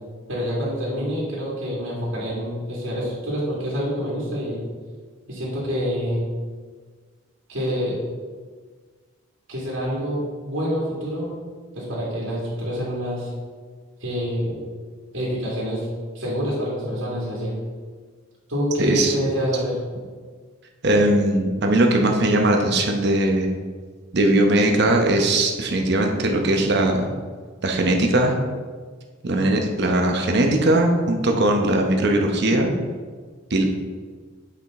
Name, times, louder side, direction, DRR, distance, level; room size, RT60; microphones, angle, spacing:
voice 1, 0.3-4.6 5.3-6.2 7.5-8.0 9.5-11.3 11.7-13.3 14.0-14.6 15.1-15.9 16.1-17.5 18.5-19.8, equal, 75° right, -6 dB, 2.2 m, -26 dB
voice 2, 18.8-19.2 20.8-23.5 24.1-27.1 27.6-28.4 29.2-32.7 33.5-33.6, right 1 dB, 55° right, 3 dB, 0.9 m, -19 dB
8.3 x 5.1 x 3.7 m, 1.5 s
head